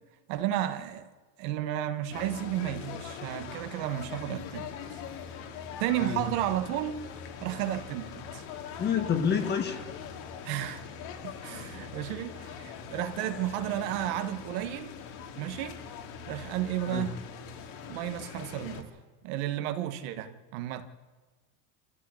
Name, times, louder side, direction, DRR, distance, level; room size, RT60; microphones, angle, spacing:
voice 1, 0.3-1.1 1.4-4.7 5.8-7.0 7.4-8.4 10.4-10.8 11.2-14.9 15.4-15.8 16.3-17.1 17.9-18.9 19.2-20.8, right 12 dB, 55° right, 1.5 m, -32 dB
sound 1, 2.1-18.8, left 7 dB, 55° left, 2.6 m, -42 dB
voice 2, 8.8-9.8 16.9-17.1, left 7 dB, 20° left, 1.6 m, -28 dB
26.0 x 14.5 x 8.4 m
cardioid pair, 170°, 48 cm